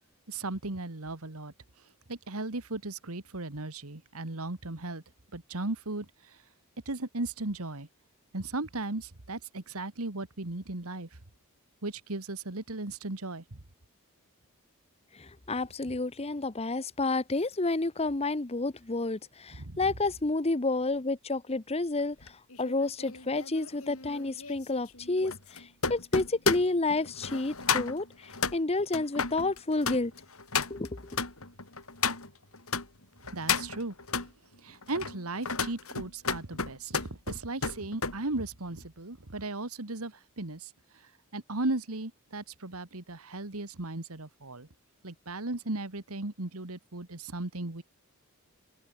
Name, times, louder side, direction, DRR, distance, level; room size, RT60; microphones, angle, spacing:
voice 1, 0.3-1.5 2.1-5.0 5.3-6.1 6.9-7.9 8.3-11.1 11.8-13.6 19.6-19.8 33.3-33.9 34.6-40.7 41.3-44.7 45.0-47.8, right 2 dB, 75° right, 2.0 m, -36 dB
voice 2, 15.1-22.3 22.6-30.1 30.7-31.1, left 2 dB, 30° left, 0.9 m, -30 dB
sound 1, 22.2-32.9 33.2-34.3 34.8-38.2 38.5-38.8, left 5 dB, 70° left, 6.7 m, -33 dB
open air
head